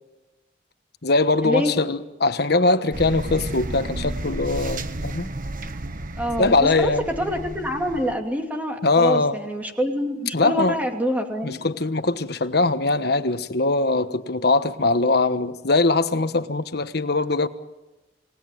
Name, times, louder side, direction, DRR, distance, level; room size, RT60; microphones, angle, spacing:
voice 1, 1.0-5.3 6.4-7.1 8.8-9.4 10.3-10.8 11.4-17.5, left 3 dB, 60° left, 1.2 m, -21 dB
sound 1, 2.9-8.2, right 1 dB, 50° right, 1.3 m, -32 dB
voice 2, 6.2-11.6, equal, 10° right, 2.8 m, -26 dB
29.5 x 19.0 x 9.3 m
head